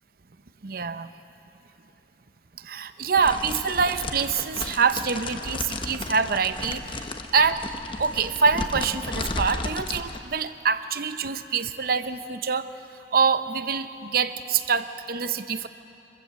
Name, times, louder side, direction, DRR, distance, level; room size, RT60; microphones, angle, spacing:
voice 1, 0.6-1.1 2.6-7.6 8.0-12.7 13.1-15.7, right 5 dB, 55° right, 11 dB, 0.7 m, -25 dB
sound 1, 3.2-10.2, left 2 dB, 30° left, 0.9 m, -34 dB
26.0 x 14.5 x 7.5 m, 2.8 s
head